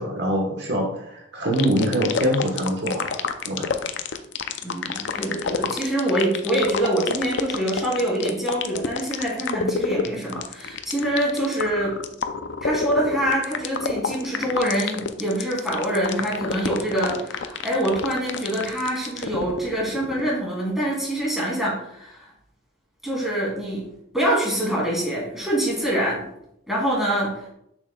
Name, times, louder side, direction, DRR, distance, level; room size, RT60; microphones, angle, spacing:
voice 1, 0.0-3.1 3.4-3.7, equal, 60° right, 0 dB, 1.2 m, -24 dB
sound 1, 1.5-20.3, left 6 dB, 65° left, 0.5 m, -28 dB
voice 2, 4.6-12.0 12.6-22.3 23.0-23.8 24.1-26.3 26.7-27.5, right 1 dB, ahead, -5 dB, 2.4 m, -25 dB
7.0 x 6.4 x 2.3 m, 0.75 s
head